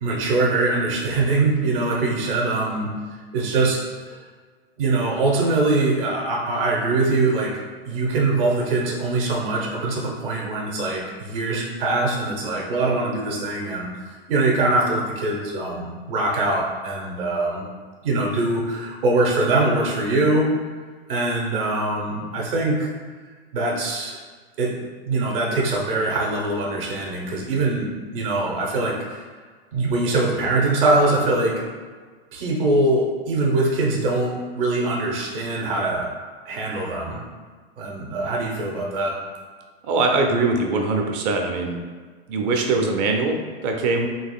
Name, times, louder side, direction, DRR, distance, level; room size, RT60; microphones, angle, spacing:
voice 1, 0.0-2.9 3.3-4.2 4.8-7.6 7.8-17.7 18.0-20.5 21.1-22.9 23.5-24.2 24.6-29.2 29.7-31.6 32.3-36.1 36.5-37.3 37.8-39.2, right 2 dB, 60° right, -1 dB, 0.9 m, -23 dB
voice 2, 39.8-41.8 42.3-44.1, right 3 dB, 40° right, 3 dB, 0.6 m, -22 dB
4.0 x 3.0 x 2.3 m, 1.5 s
figure-of-eight pair, 95°, 31 cm